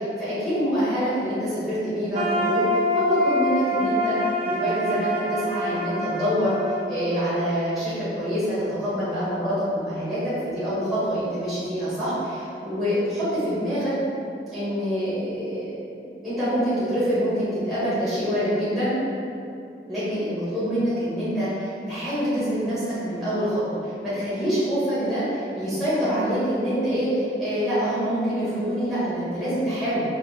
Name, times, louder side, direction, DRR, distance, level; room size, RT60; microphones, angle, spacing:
voice 1, 0.0-2.6 2.9-4.2 4.5-13.9 14.5-18.9 19.9-30.0, equal, ahead, -14 dB, 1.3 m, -26 dB
sound 1, 2.1-8.1, equal, 35° right, 0.4 m, -26 dB
5.9 x 3.3 x 2.4 m, 2.6 s
head